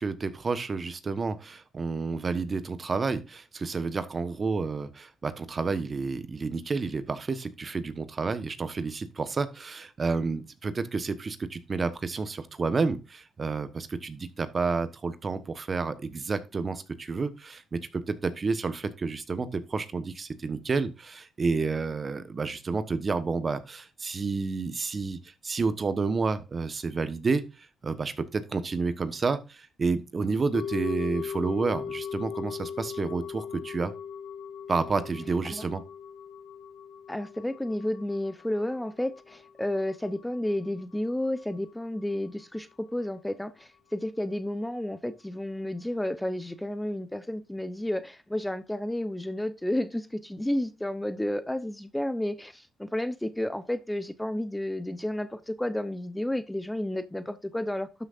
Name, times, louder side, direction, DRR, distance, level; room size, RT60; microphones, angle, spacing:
voice 1, 0.0-33.9 34.7-35.8, right 4 dB, 35° right, 1.1 m, -30 dB
sound 1, 30.5-40.8 41.1-41.2, left 7 dB, 65° left, 1.5 m, -39 dB
voice 2, 37.1-57.9, left 1 dB, 5° left, 0.8 m, -31 dB
12.5 x 6.3 x 2.5 m
cardioid pair, 90°, 0 cm